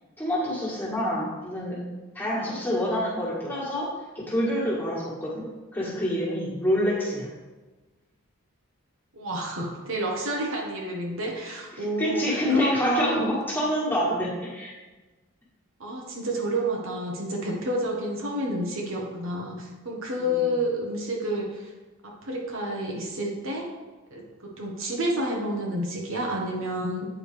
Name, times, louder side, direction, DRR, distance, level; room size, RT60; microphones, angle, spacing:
voice 1, 0.2-1.8 2.1-3.9 4.2-7.3 11.8-14.7 20.2-20.5, equal, 10° left, -7 dB, 1.8 m, -27 dB
voice 2, 9.1-13.2 15.8-21.7 22.0-23.7 24.1-27.1, equal, 60° right, -1 dB, 1.1 m, -29 dB
8.6 x 4.8 x 3.4 m, 1.2 s
head